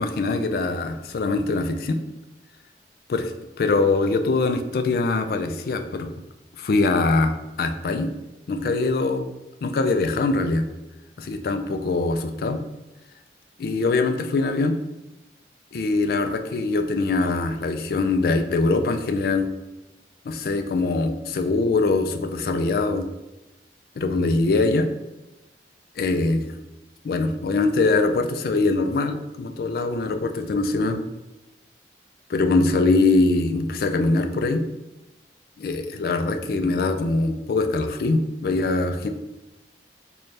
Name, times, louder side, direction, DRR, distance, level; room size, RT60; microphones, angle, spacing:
voice 1, 0.0-2.0 3.1-3.3 3.6-6.1 6.6-8.1 8.5-9.3 9.6-10.6 11.2-12.6 13.6-14.8 15.7-19.5 20.3-23.1 24.0-24.9 26.0-26.5 27.0-31.0 32.3-34.6 35.6-39.1, left 3 dB, 55° left, 7 dB, 0.3 m, -23 dB
3.2 x 2.3 x 4.0 m, 1.0 s
head